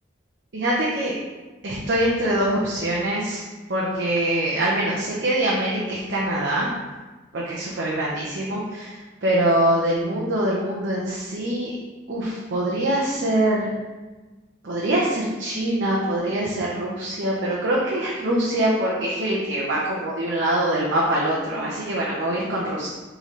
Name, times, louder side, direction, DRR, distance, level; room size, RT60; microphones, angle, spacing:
voice 1, 0.5-1.1 1.6-3.4 3.7-6.7 7.3-11.7 12.1-13.7 14.6-22.9, right 1 dB, 70° right, -5 dB, 0.7 m, -24 dB
4.1 x 3.8 x 3.0 m, 1.2 s
head